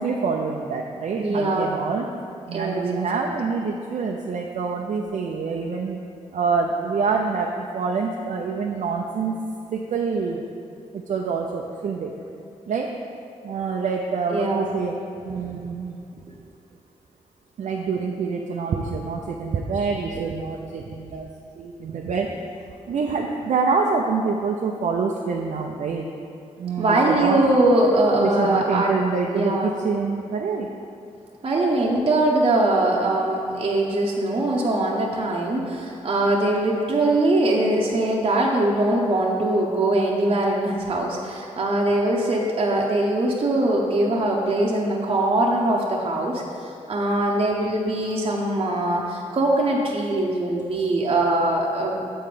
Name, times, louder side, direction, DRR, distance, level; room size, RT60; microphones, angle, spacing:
voice 1, 0.0-2.1 2.5-6.0 6.3-9.4 9.7-10.4 10.9-12.1 12.7-12.9 13.4-14.9 15.2-16.0 17.6-21.3 21.6-22.4 22.9-26.1 26.6-27.4 28.2-30.7, right 5 dB, 65° right, 0 dB, 0.5 m, -26 dB
voice 2, 1.2-1.7 2.5-3.4 14.3-14.7 26.8-28.9 29.3-29.7 31.4-52.0, right 1 dB, 45° right, -3 dB, 0.9 m, -22 dB
7.5 x 4.4 x 5.1 m, 2.5 s
cardioid pair, 55°, 13 cm